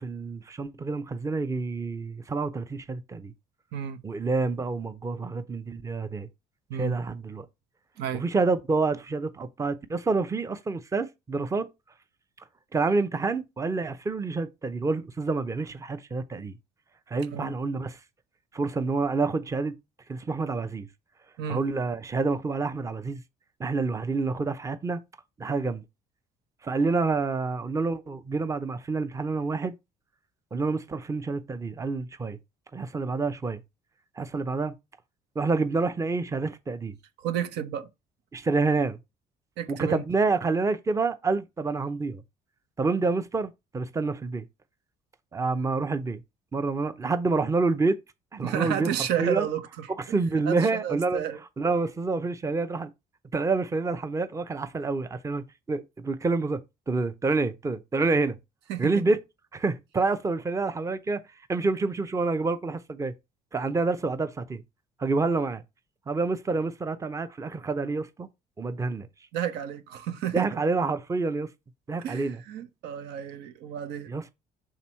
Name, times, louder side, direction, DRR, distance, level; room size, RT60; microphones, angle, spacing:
voice 1, 0.0-3.3 4.0-6.3 6.7-7.5 8.1-11.7 12.7-16.6 17.1-18.0 18.5-19.7 20.1-20.9 21.5-23.2 23.6-25.0 25.4-25.8 26.6-29.7 30.5-32.4 32.7-33.6 34.2-34.7 35.4-37.0 38.3-39.0 39.7-42.2 42.8-44.5 45.3-46.2 46.5-48.0 48.3-48.9 49.2-49.5 50.1-51.2 51.6-52.9 53.3-56.6 56.9-58.4 58.8-59.2 59.5-61.2 61.5-63.1 63.5-64.6 65.0-65.6 66.1-68.3 68.6-69.1 70.3-71.5 71.9-72.4 74.1-74.3, right 3 dB, 20° right, 0.7 m, -28 dB
voice 2, 3.7-4.0 6.7-7.0 8.0-8.2 17.3-17.5 21.4-21.6 37.2-37.9 39.6-40.0 48.4-49.9 50.5-51.4 58.7-58.9 69.3-70.6 72.0-74.1, right 10 dB, 85° right, 0.9 m, -31 dB
5.9 x 3.7 x 4.4 m
cardioid pair, 110°, 17 cm